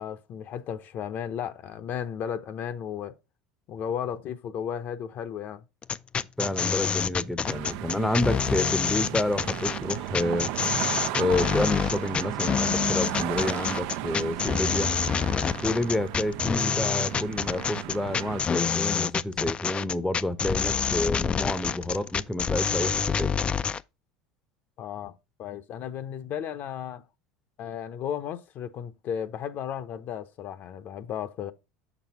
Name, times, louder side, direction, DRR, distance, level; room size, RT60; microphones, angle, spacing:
voice 1, 0.0-3.2 3.7-5.6 24.8-25.1 25.4-27.0 27.6-31.5, left 8 dB, 50° left, 0.7 m, -34 dB
sound 1, 5.8-23.8, left 6 dB, 25° left, 0.3 m, -27 dB
voice 2, 6.4-10.5 11.2-14.9 15.6-23.4, left 1 dB, 5° left, 0.7 m, -29 dB
sound 2, 7.4-18.4, right 14 dB, 70° right, 0.4 m, -35 dB
6.5 x 6.1 x 2.9 m
supercardioid pair, 105°, 4 cm